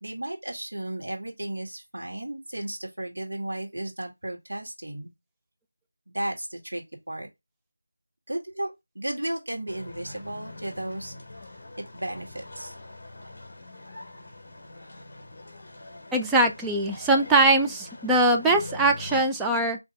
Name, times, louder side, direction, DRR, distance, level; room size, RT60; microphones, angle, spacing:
voice 1, 0.0-5.1 6.1-7.3 8.3-11.1 11.8-12.8, right 1 dB, 60° right, 1.7 m, -34 dB
sound 1, 9.7-19.2, left 2 dB, 35° left, 1.2 m, -43 dB
voice 2, 16.1-19.8, right 2 dB, 5° right, 0.4 m, -22 dB
4.1 x 2.9 x 3.2 m
figure-of-eight pair, 165°, 0 cm